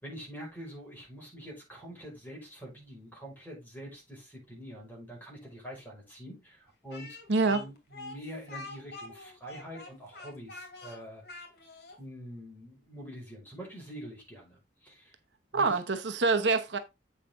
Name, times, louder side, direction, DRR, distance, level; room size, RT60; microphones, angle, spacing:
voice 1, 0.0-7.2 7.4-11.2 12.0-15.1 15.5-15.8, equal, 10° left, 5.5 m, -45 dB
Speech, 6.9-12.0, left 2 dB, 60° left, 2.4 m, -45 dB
voice 2, 7.3-7.6 15.5-16.8, right 3 dB, 80° right, 1.0 m, -26 dB
8.2 x 5.8 x 3.7 m
head